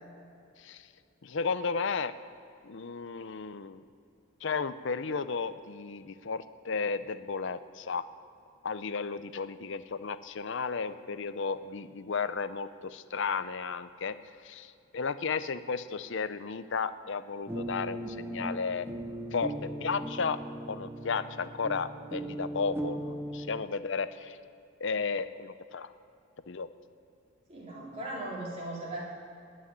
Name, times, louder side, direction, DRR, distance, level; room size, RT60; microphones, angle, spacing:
voice 1, 1.2-2.1 2.6-3.8 4.4-8.1 8.6-14.2 14.4-18.9 19.3-20.4 20.7-24.4 24.8-25.9 26.5-26.7, left 5 dB, 60° left, 13 dB, 0.6 m, -34 dB
sound 1, 17.5-23.6, right 1 dB, 10° right, 0.7 m, -38 dB
voice 2, 27.5-29.0, right 1 dB, 30° right, -5 dB, 3.8 m, -38 dB
18.5 x 6.3 x 10.0 m, 2.5 s
head